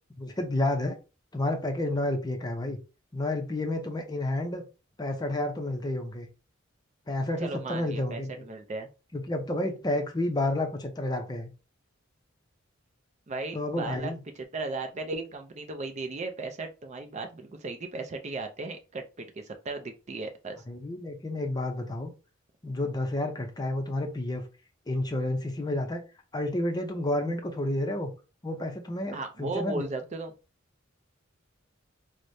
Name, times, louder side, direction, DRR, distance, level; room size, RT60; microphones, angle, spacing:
voice 1, 0.2-1.0 1.3-2.8 3.1-4.6 5.0-6.3 7.1-8.4 9.1-11.5 13.5-14.2 20.7-22.1 22.6-24.4 24.9-26.0 26.3-28.1 28.4-29.8, left 1 dB, 20° left, 0.5 m, -30 dB
voice 2, 7.4-8.9 13.3-14.1 14.5-20.6 29.1-30.3, right 3 dB, 35° right, 0.5 m, -36 dB
4.7 x 2.1 x 2.7 m
head